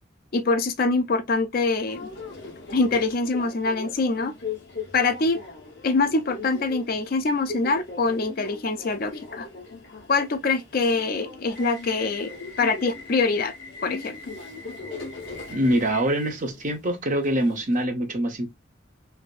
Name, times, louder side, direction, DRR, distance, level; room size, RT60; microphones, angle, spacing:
voice 1, 0.3-2.0 2.7-4.3 4.9-5.4 5.8-9.5 10.1-12.3 12.6-13.5 13.8-14.2, left 3 dB, 45° left, 0.4 m, -24 dB
Subway metro underground, 1.9-17.8, left 4 dB, 65° left, 1.2 m, -39 dB
voice 2, 15.5-18.5, right 1 dB, 40° right, 0.8 m, -24 dB
3.3 x 2.7 x 2.3 m
head